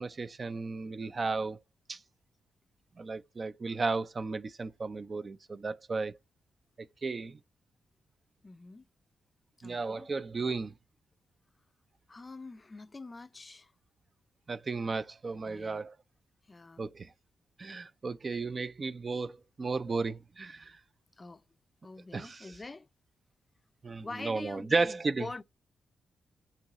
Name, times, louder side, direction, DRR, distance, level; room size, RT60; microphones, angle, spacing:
voice 1, 0.0-1.6 1.9-2.0 3.0-6.1 7.0-7.4 9.6-10.7 14.5-15.9 16.8-17.1 17.6-20.8 22.1-22.5 23.8-25.3, right 4 dB, 45° right, 0.5 m, -34 dB
voice 2, 8.4-8.9 9.6-10.1 12.1-13.7 15.4-15.9 16.5-16.9 21.2-21.4 21.8-22.9 24.0-25.4, left 3 dB, 30° left, 0.4 m, -45 dB
8.4 x 3.1 x 3.6 m
cardioid pair, 60°, 0 cm